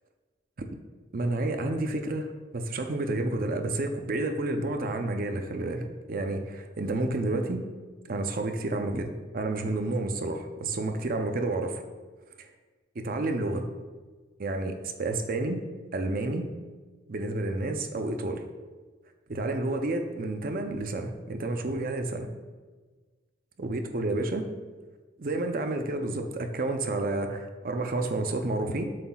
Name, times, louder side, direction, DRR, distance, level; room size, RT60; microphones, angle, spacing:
voice 1, 1.1-7.6 8.1-11.8 13.0-13.7 14.4-15.6 15.9-16.5 17.1-18.4 19.3-22.3 23.6-24.4 25.2-28.8, right 2 dB, 50° right, 5 dB, 0.6 m, -30 dB
7.5 x 5.7 x 2.4 m, 1.4 s
head